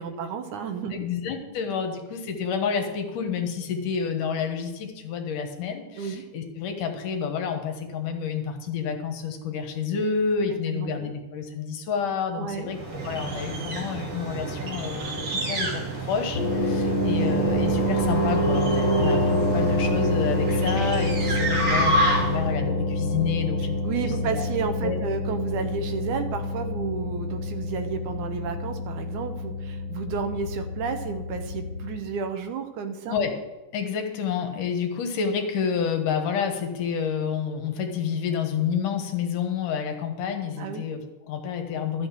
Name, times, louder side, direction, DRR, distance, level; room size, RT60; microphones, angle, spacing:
voice 1, 0.0-1.1 6.0-6.2 10.7-11.1 12.4-12.7 18.9-19.1 23.8-33.2 40.6-40.9, right 6 dB, 70° right, 7 dB, 2.2 m, -32 dB
voice 2, 0.9-12.8 13.0-24.5 24.8-25.1 33.1-33.3 33.7-42.1, left 6 dB, 75° left, 4 dB, 2.8 m, -29 dB
sound 1, 12.7-22.5, right 1 dB, 45° right, 2.2 m, -29 dB
sound 2, 16.3-32.0, equal, 55° left, 3.2 m, -26 dB
13.0 x 6.4 x 7.5 m, 1.1 s
omnidirectional pair, 3.8 m